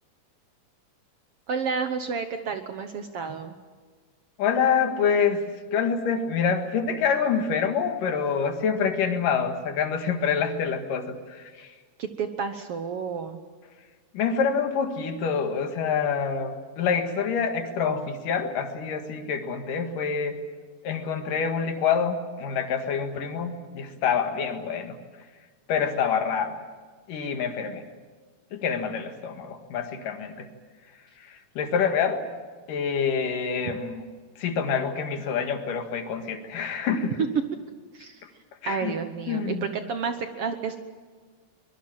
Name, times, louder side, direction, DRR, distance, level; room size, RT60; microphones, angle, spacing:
voice 1, 1.5-3.6 12.0-13.4 37.9-38.2 38.6-40.8, right 5 dB, 65° right, 8 dB, 1.6 m, -31 dB
voice 2, 4.4-11.8 14.1-20.4 20.8-25.0 25.7-26.5 27.1-27.8 28.5-30.5 30.9-32.2 32.7-34.0 34.4-37.2 38.6-39.0 39.3-39.7, left 6 dB, 80° left, 6 dB, 3.4 m, -26 dB
24.0 x 22.0 x 7.4 m, 1.5 s
omnidirectional pair, 3.7 m